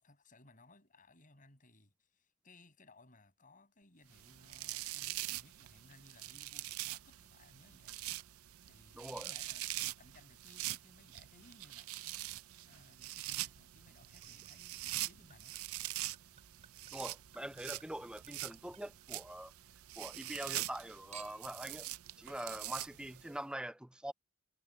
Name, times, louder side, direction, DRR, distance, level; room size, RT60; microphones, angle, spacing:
voice 1, 0.0-8.0 8.7-15.5, left 2 dB, 40° left, 7.5 m, -63 dB
sound 1, 4.1-23.3, right 16 dB, 80° right, 0.5 m, -44 dB
voice 2, 9.0-9.3 16.9-19.5 20.0-21.9 22.2-24.1, right 1 dB, 5° right, 0.5 m, -44 dB
Chink clink / Liquid, 14.2-19.7 20.1-20.8 21.1-21.6 22.4-22.5, right 8 dB, 30° right, 3.3 m, -60 dB
head